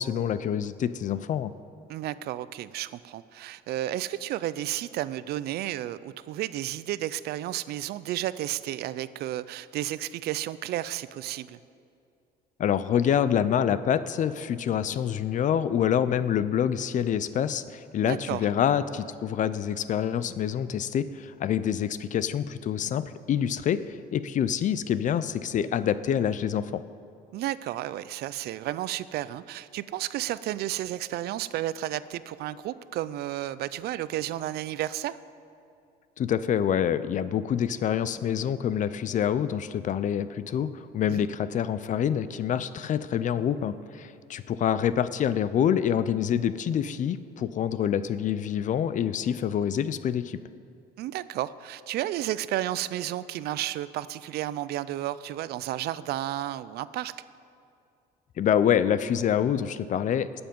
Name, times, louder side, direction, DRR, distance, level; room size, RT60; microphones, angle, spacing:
voice 1, 0.0-1.5 12.6-26.8 36.2-50.4 58.4-60.4, left 9 dB, 50° left, 14 dB, 0.5 m, -26 dB
voice 2, 1.9-11.6 18.0-18.5 27.3-35.2 41.1-41.3 51.0-57.1, right 14 dB, 70° right, 16 dB, 0.4 m, -32 dB
19.5 x 7.0 x 5.4 m, 2.5 s
cardioid pair, 110°, 17 cm